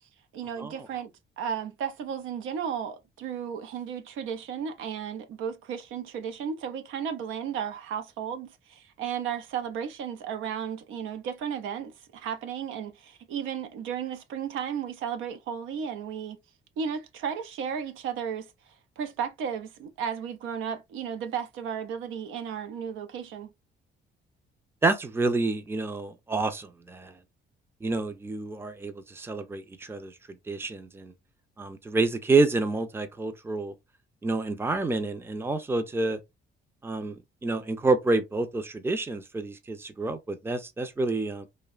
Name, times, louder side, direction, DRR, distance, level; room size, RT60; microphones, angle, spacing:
voice 1, 0.3-1.1 1.4-16.4 16.8-18.5 19.0-23.5, right 7 dB, 85° right, 0.5 m, -34 dB
voice 2, 24.8-27.2 27.8-30.1 30.5-31.1 31.6-33.7 34.2-36.2 36.8-41.5, right 3 dB, 10° right, 0.4 m, -28 dB
2.7 x 2.1 x 2.3 m
cardioid pair, 90°, 20 cm